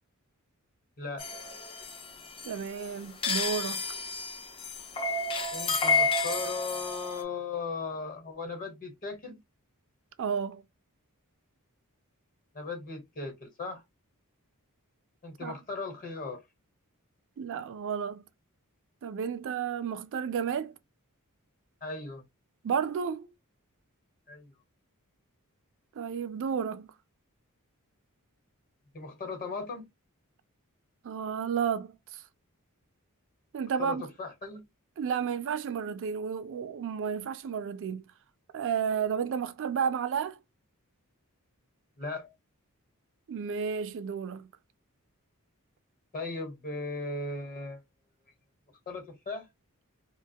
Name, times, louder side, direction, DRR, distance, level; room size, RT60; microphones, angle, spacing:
sound 1, 1.2-7.2, left 4 dB, 25° left, 0.4 m, -31 dB
voice 1, 2.4-3.8 10.2-10.6 15.4-15.5 17.4-18.2 19.0-20.7 22.6-23.3 26.0-26.9 31.0-32.2 33.5-34.1 35.0-38.1 38.5-40.4 43.3-44.5, right 7 dB, 60° right, 0.4 m, -32 dB
voice 2, 5.5-9.4 12.5-13.8 15.2-16.4 21.8-22.2 24.3-24.5 28.9-29.9 33.8-34.6 42.0-42.3 46.1-47.8 48.9-49.5, left 4 dB, 40° left, 1.1 m, -37 dB
2.4 x 2.2 x 2.7 m
head